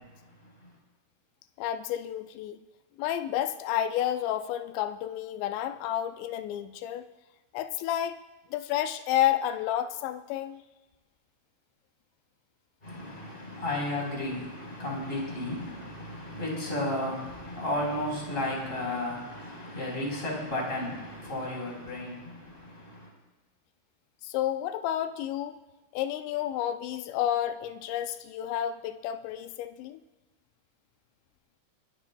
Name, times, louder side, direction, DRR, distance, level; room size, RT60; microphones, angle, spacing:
voice 1, 1.6-2.6 3.0-7.1 7.5-8.2 8.5-10.6 24.2-25.6 25.9-30.0, left 11 dB, 85° left, 9 dB, 2.5 m, -30 dB
voice 2, 12.8-23.1, left 1 dB, 10° left, -2 dB, 3.5 m, -33 dB
29.5 x 12.5 x 2.3 m, 1.1 s
omnidirectional pair, 5.6 m